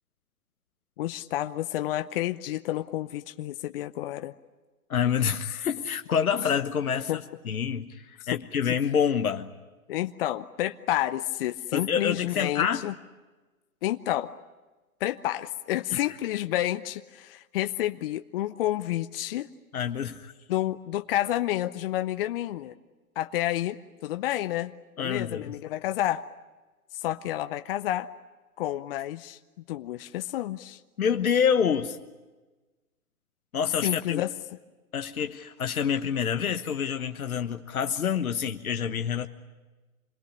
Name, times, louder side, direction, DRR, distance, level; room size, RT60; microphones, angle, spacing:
voice 1, 1.0-4.3 7.1-7.2 8.2-8.4 8.7-8.8 9.9-12.9 13.8-14.3 15.0-19.5 20.5-22.7 23.2-24.7 25.0-26.2 26.9-28.1 28.6-29.4 29.7-30.8 33.8-34.3, left 14 dB, 40° left, 9 dB, 0.8 m, -30 dB
voice 2, 4.9-9.5 11.7-12.8 15.9-16.0 19.7-20.3 25.0-25.5 31.0-32.0 33.5-34.2 34.9-39.3, left 7 dB, 70° left, 7 dB, 1.3 m, -27 dB
27.0 x 21.0 x 9.9 m, 1.2 s
figure-of-eight pair, 120°, 44 cm